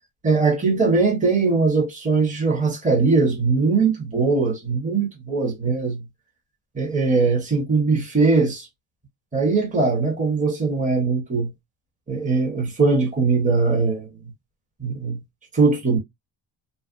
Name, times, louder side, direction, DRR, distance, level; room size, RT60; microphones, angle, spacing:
voice 1, 0.2-6.0 6.7-8.7 9.3-11.5 12.1-14.1 14.8-15.2 15.5-16.0, right 4 dB, 15° right, 1.0 m, -20 dB
3.1 x 2.4 x 2.5 m
cardioid pair, 120°, 50 cm